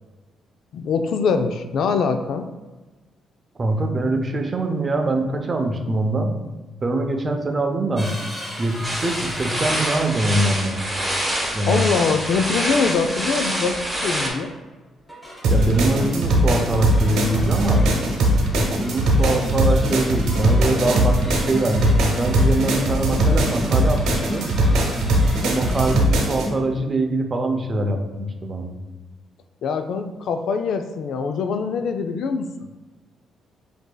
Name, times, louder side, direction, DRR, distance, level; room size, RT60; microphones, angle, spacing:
voice 1, 0.7-2.5 11.7-14.5 29.6-32.5, left 5 dB, 70° left, 7 dB, 0.3 m, -23 dB
voice 2, 3.6-6.4 6.8-8.2 8.6-10.8 11.5-11.9 15.5-17.9 18.5-24.5 25.4-28.7, right 2 dB, 35° right, 5 dB, 0.5 m, -23 dB
sound 1, 8.0-10.9 12.1-12.4 13.4-14.0 15.0-25.9, equal, 5° left, 1.5 m, -38 dB
sound 2, 8.8-14.3, right 1 dB, 10° right, 1.1 m, -26 dB
sound 3, 15.4-26.5, right 1 dB, 85° right, 0.9 m, -20 dB
7.7 x 2.7 x 2.2 m, 1.2 s
cardioid pair, 90°, 0 cm